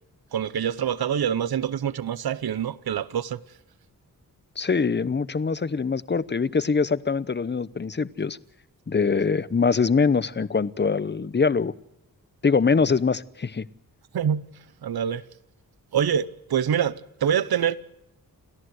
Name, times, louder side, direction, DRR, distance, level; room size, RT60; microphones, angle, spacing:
voice 1, 0.3-3.4 14.1-14.5 14.8-15.2 15.9-17.8, right 8 dB, 85° right, 0.9 m, -25 dB
voice 2, 4.6-8.4 8.9-11.7 12.4-13.7, left 5 dB, 30° left, 0.9 m, -23 dB
29.0 x 13.5 x 7.9 m
wide cardioid pair, 90°, 36 cm